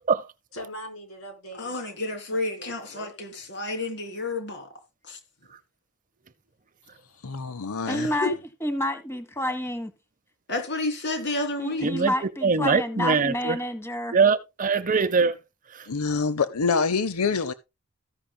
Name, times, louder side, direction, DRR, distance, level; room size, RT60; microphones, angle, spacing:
voice 1, 0.5-2.0 2.3-3.4 5.4-5.6, equal, 70° left, 4.6 m, -43 dB
voice 2, 1.6-4.7 5.0-5.2 7.8-8.3 10.5-11.9, left 2 dB, 50° left, 3.1 m, -30 dB
voice 3, 7.2-8.1 15.9-17.5, left 5 dB, 85° left, 0.7 m, -26 dB
voice 4, 7.8-8.3 8.6-9.9 11.6-14.2, left 1 dB, 10° left, 1.4 m, -29 dB
voice 5, 11.8-12.1 12.4-13.6 14.1-15.4 15.8-15.9, right 5 dB, 35° right, 0.7 m, -22 dB
14.5 x 10.0 x 2.3 m
head